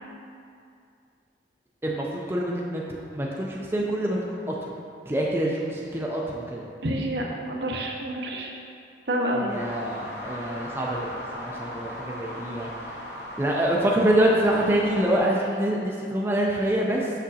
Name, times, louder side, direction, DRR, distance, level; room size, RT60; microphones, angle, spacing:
voice 1, 1.8-2.8 3.1-4.7 5.1-6.6 9.3-12.7 13.4-17.1, right 1 dB, 15° right, -3 dB, 0.4 m, -26 dB
voice 2, 6.8-8.5 9.1-9.5, right 1 dB, 65° right, -1 dB, 0.8 m, -28 dB
sound 1, 9.5-15.3, left 1 dB, 60° left, 1.1 m, -38 dB
6.3 x 6.0 x 2.8 m, 2.4 s
head